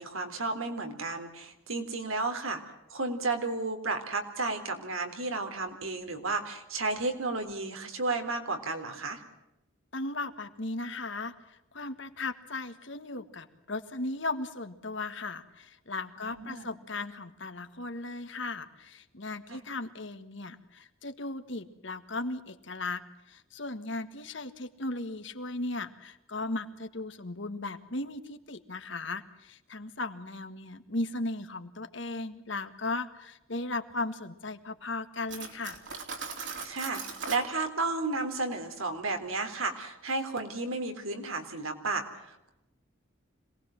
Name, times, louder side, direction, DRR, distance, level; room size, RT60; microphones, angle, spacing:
voice 1, 0.0-2.6 2.9-9.2 16.2-16.7 19.5-19.6 36.6-37.0 37.3-42.5, right 3 dB, 85° right, 6 dB, 3.6 m, -33 dB
voice 2, 9.9-23.0 23.3-35.8, left 2 dB, 60° left, 9 dB, 1.8 m, -37 dB
Cutlery silverware, 35.3-37.5, right 5 dB, 60° right, 3.9 m, -39 dB
26.5 x 19.5 x 7.6 m, 0.88 s
head